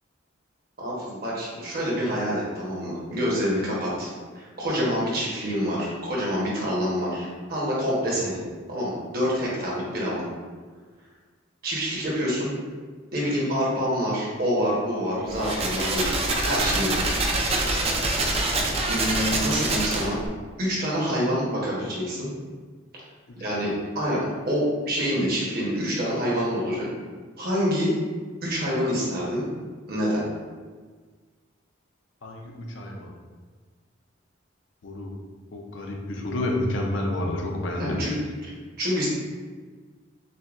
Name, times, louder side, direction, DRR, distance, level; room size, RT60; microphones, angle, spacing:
voice 1, 0.8-8.4 8.7-10.2 11.6-12.5 13.1-17.2 18.9-20.2 20.6-22.3 23.4-24.2 24.5-26.9 27.4-27.9 28.4-29.4 29.9-30.2 37.8-39.1, equal, 50° right, -5 dB, 1.1 m, -27 dB
sound 1, 15.3-20.3, right 2 dB, 30° right, 0.4 m, -25 dB
voice 2, 23.3-23.6 32.2-33.1 34.8-35.1 35.5-38.0, left 1 dB, 70° left, 0 dB, 0.6 m, -30 dB
6.5 x 2.2 x 2.5 m, 1.5 s
head